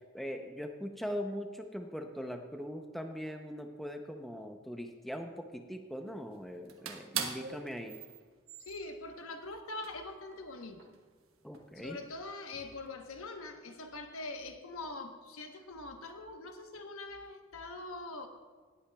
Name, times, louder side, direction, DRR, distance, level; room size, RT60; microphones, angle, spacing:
voice 1, 0.1-8.0 11.4-12.0, equal, ahead, 4 dB, 0.5 m, -41 dB
sound 1, 6.2-6.3 6.6-9.4 9.8-10.0 10.3-12.0 12.5-12.9, right 7 dB, 80° right, 1.1 m, -41 dB
voice 2, 8.6-10.9 11.8-18.3, left 2 dB, 85° left, 5 dB, 1.0 m, -43 dB
18.0 x 8.6 x 2.3 m, 1.5 s
head